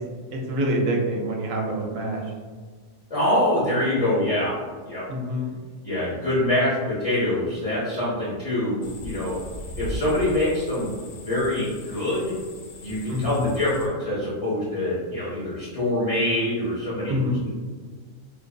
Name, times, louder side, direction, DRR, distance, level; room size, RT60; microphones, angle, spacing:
voice 1, 0.3-2.2 5.1-5.6 13.1-13.4 17.1-17.4, equal, 75° right, 0 dB, 1.0 m, -26 dB
voice 2, 3.1-4.6 4.9-5.1 5.8-9.4 9.8-10.9 11.3-12.4 12.8-17.5, left 1 dB, 40° left, -10 dB, 0.5 m, -25 dB
sound 1, 8.8-13.9, equal, 85° left, 1.0 m, -39 dB
2.6 x 2.4 x 2.2 m, 1.5 s
omnidirectional pair, 1.5 m